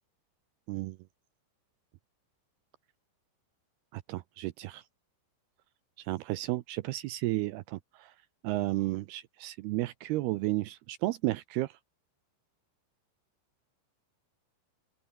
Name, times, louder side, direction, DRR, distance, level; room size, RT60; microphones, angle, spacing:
voice 1, 3.9-4.8 6.0-8.1 8.4-11.7, right 17 dB, 90° right, 2.2 m, -33 dB
open air
omnidirectional pair, 5.6 m